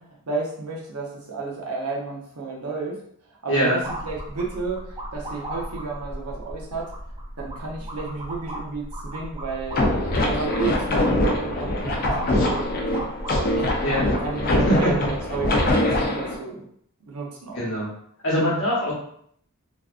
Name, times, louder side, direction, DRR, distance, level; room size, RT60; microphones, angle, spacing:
voice 1, 0.0-3.0 3.4-6.9 7.4-9.9 10.2-13.1 13.5-13.7 14.2-16.6 17.1-17.6, right 4 dB, 85° right, -2 dB, 0.7 m, -32 dB
sound 1, 3.8-15.6, right 1 dB, 20° right, 0.4 m, -36 dB
sound 2, 9.7-16.4, left 1 dB, 40° left, 0.4 m, -23 dB
voice 2, 14.6-15.1 17.5-17.9 18.2-18.9, equal, 60° left, -5 dB, 1.0 m, -22 dB
2.6 x 2.2 x 2.4 m, 0.66 s
head